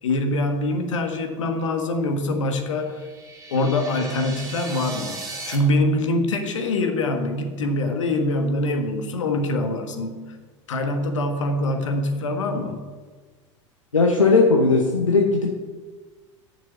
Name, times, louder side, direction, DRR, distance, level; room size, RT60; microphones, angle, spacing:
voice 1, 0.0-3.1 3.5-10.2 10.7-12.8, left 1 dB, 75° left, 5 dB, 1.4 m, -24 dB
sound 1, 2.8-5.6, right 3 dB, 20° right, 3.3 m, -37 dB
voice 2, 13.9-15.6, left 3 dB, 90° left, 0 dB, 1.0 m, -18 dB
7.0 x 6.3 x 7.6 m, 1.4 s
figure-of-eight pair, 80°, 16 cm